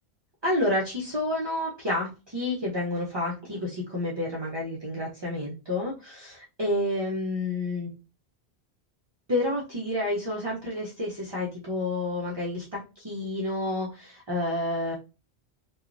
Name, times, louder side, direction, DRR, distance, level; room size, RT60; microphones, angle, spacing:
voice 1, 0.4-7.9 9.3-14.9, left 1 dB, 30° right, -3 dB, 0.5 m, -29 dB
2.9 x 2.3 x 2.5 m, 0.30 s
omnidirectional pair, 1.1 m